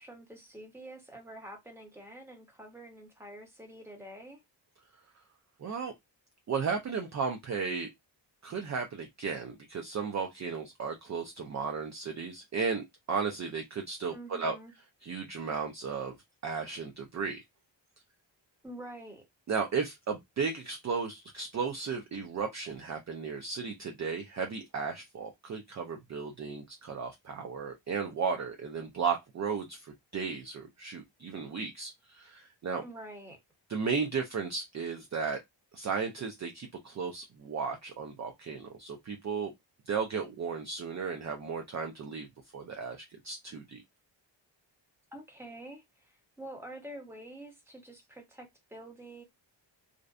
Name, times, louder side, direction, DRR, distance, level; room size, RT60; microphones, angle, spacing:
voice 1, 0.0-4.4 14.1-14.7 18.6-19.2 32.8-33.4 45.1-49.2, right 1 dB, 5° right, 0.9 m, -47 dB
voice 2, 5.6-5.9 6.5-7.9 8.4-14.6 15.0-16.2 16.4-17.4 19.5-32.8 33.7-35.4 35.7-39.5 39.9-42.3 42.5-43.8, right 5 dB, 40° right, 0.4 m, -35 dB
2.5 x 2.1 x 2.4 m
wide cardioid pair, 100°, 47 cm